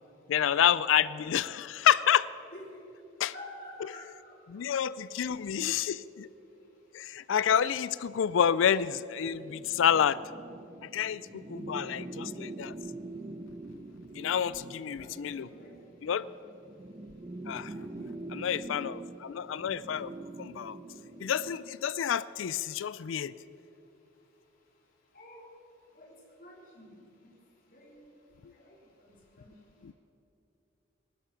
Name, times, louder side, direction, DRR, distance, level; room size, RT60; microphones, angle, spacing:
voice 1, 0.3-2.3 3.2-3.3 4.5-6.3 6.9-10.2 10.8-12.7 14.1-15.5 16.0-16.3 17.5-17.7 18.3-20.1 20.4-20.8 21.2-23.3 29.8-29.9, left 9 dB, 85° left, 17 dB, 0.4 m, -28 dB
voice 2, 3.3-4.3 5.8-5.9 15.0-15.7 17.7-18.5 25.1-25.6 26.0-27.0 27.7-28.0 28.6-28.8 29.1-29.6, left 1 dB, 45° left, -3 dB, 3.5 m, -49 dB
sound 1, 9.3-21.7, right 2 dB, 25° right, 0.5 m, -44 dB
19.0 x 11.5 x 5.9 m, 2.8 s
head